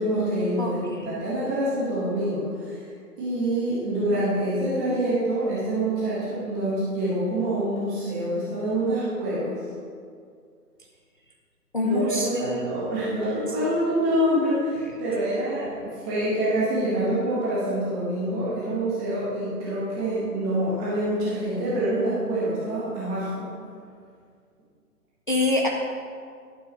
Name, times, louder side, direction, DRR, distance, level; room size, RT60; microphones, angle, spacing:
voice 1, 0.0-2.8 3.2-9.5 11.8-23.5, right 1 dB, 5° right, -10 dB, 0.7 m, -26 dB
voice 2, 0.6-1.2 11.7-12.6 13.1-13.3 25.3-25.7, left 2 dB, 35° left, 0 dB, 0.5 m, -26 dB
11.0 x 5.5 x 4.6 m, 2.2 s
figure-of-eight pair, 140°, 48 cm